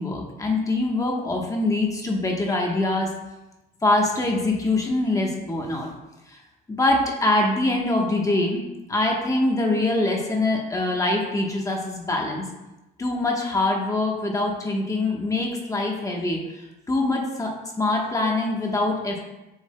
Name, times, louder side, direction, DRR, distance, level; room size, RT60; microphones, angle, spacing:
voice 1, 0.0-3.1 3.8-5.9 6.7-8.6 8.9-12.4 13.0-16.4 16.9-17.5 17.8-19.2, left 2 dB, 20° left, 0 dB, 1.2 m, -24 dB
7.8 x 7.0 x 2.3 m, 1.0 s
cardioid pair, 110°, 17 cm